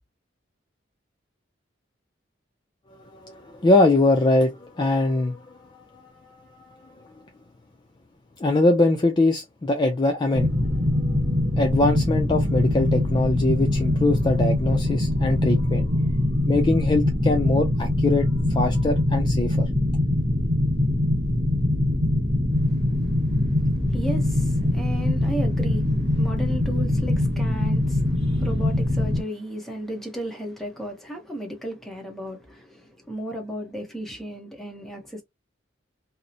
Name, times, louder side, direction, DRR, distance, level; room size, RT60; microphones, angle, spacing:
voice 1, 3.1-7.1 8.4-10.5 10.9-16.1 16.5-19.6, left 2 dB, 25° left, 0.3 m, -23 dB
sound 1, 10.3-29.2, left 1 dB, 45° right, 1.0 m, -23 dB
voice 2, 22.6-35.2, right 1 dB, ahead, 0.7 m, -35 dB
2.7 x 2.0 x 2.5 m
head